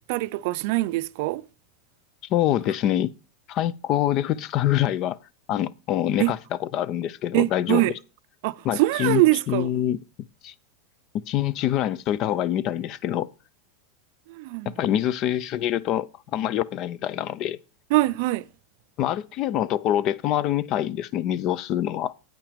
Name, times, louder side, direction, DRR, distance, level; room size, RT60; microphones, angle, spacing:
voice 1, 0.1-1.4 6.2-6.3 7.3-7.9 8.4-9.7 14.3-14.7 17.9-18.4, right 20 dB, 60° right, 0.4 m, -23 dB
voice 2, 2.3-3.1 3.5-5.2 5.5-7.9 8.6-10.0 10.4-10.5 11.3-13.3 14.7-17.6 19.0-22.1, left 12 dB, 40° left, 0.4 m, -25 dB
8.7 x 5.9 x 5.1 m
supercardioid pair, 145°, 0 cm